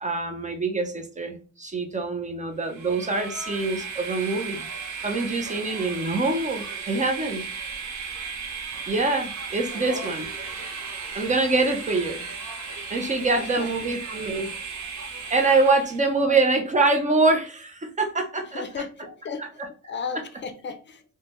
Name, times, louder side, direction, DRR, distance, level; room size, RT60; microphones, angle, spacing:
voice 1, 0.0-4.7 5.0-7.4 8.9-10.3 11.1-12.2 12.9-14.5 15.3-18.6 19.4-19.5, right 3 dB, 25° right, 5 dB, 0.5 m, -24 dB
Train, 2.6-16.1, right 5 dB, 70° right, 0.8 m, -35 dB
voice 2, 9.7-10.2 13.3-13.7 16.2-16.4 18.5-19.4 19.8-21.0, left 5 dB, 40° left, 8 dB, 0.5 m, -35 dB
3.2 x 2.1 x 2.9 m, 0.39 s
cardioid pair, 90°, 30 cm